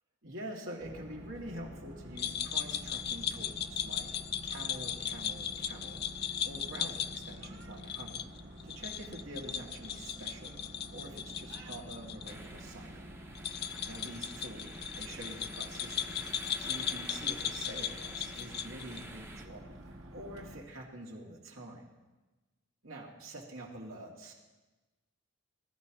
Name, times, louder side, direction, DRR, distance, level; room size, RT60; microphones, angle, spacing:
voice 1, 0.2-8.2 8.6-10.6 10.9-13.0 13.8-16.2 16.6-21.9 22.8-24.3, right 1 dB, 85° right, -2 dB, 2.6 m, -46 dB
sound 1, 0.8-20.6, equal, 70° right, 1.8 m, -49 dB
sound 2, 2.2-12.3 12.6-12.7 13.3-19.1, left 9 dB, 55° left, 0.4 m, -37 dB
sound 3, 12.2-19.5, right 2 dB, 10° right, 0.7 m, -50 dB
20.5 x 12.5 x 3.1 m, 1.2 s
head